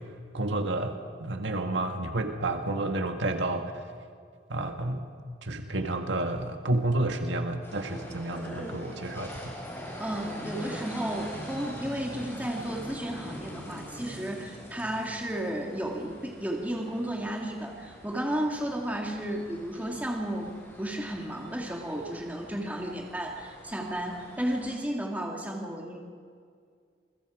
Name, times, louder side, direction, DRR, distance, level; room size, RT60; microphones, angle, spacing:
voice 1, 0.3-0.9 1.2-3.8 4.5-5.0 5.4-9.5, right 2 dB, 75° right, 4 dB, 1.8 m, -30 dB
sound 1, 7.6-24.8, equal, 15° left, 5.3 m, -43 dB
voice 2, 10.0-20.5 20.8-26.0, right 1 dB, 10° right, 0 dB, 2.3 m, -33 dB
28.0 x 22.5 x 5.0 m, 2.1 s
head